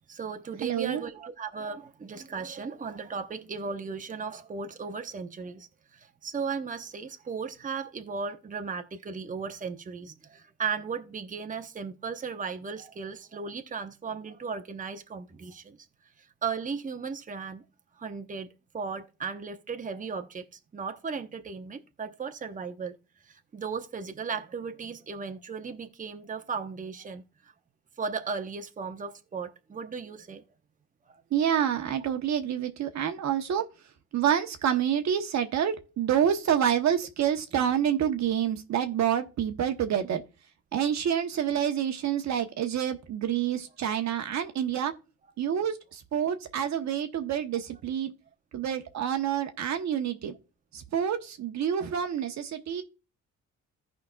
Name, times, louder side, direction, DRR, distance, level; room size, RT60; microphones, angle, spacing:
voice 1, 0.1-15.8 16.2-17.6 18.0-23.0 23.2-27.5 28.0-30.4 31.1-31.2 51.8-51.9, right 5 dB, 25° right, 0.9 m, -36 dB
voice 2, 0.6-1.0 31.3-33.7 34.1-40.2 40.7-44.9 45.4-48.1 48.5-50.3 50.7-52.8, right 9 dB, 65° right, 1.0 m, -28 dB
15.0 x 5.1 x 2.3 m
cardioid pair, 90°, 30 cm